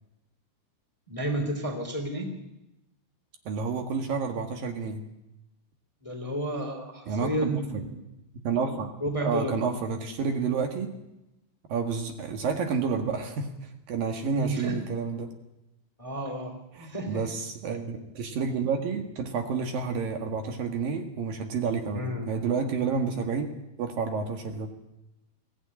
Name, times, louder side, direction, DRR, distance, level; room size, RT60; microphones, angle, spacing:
voice 1, 1.1-2.3 6.0-8.0 9.0-9.6 14.3-14.8 16.0-16.6 16.8-17.2 21.9-22.3 23.1-23.3, right 1 dB, 10° left, 5 dB, 2.7 m, -31 dB
voice 2, 3.5-5.0 7.1-7.9 8.4-8.9 9.2-10.9 11.7-15.3 16.8-23.5 23.8-24.7, right 5 dB, 60° right, 5 dB, 3.2 m, -30 dB
22.5 x 16.5 x 9.8 m, 0.92 s
omnidirectional pair, 4.8 m